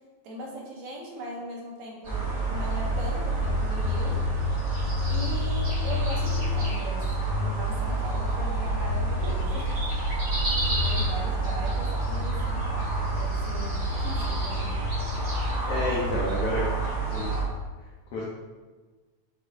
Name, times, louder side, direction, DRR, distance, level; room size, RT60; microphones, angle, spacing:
voice 1, 0.2-4.2 5.1-9.8 10.3-14.8, right 1 dB, 75° right, -2 dB, 2.0 m, -39 dB
sound 1, 2.0-17.4, right 1 dB, 40° right, 1.4 m, -27 dB
voice 2, 15.7-16.6 17.1-17.4 18.1-18.2, left 2 dB, 85° left, -4 dB, 1.3 m, -29 dB
6.4 x 2.4 x 2.8 m, 1.3 s
omnidirectional pair, 3.4 m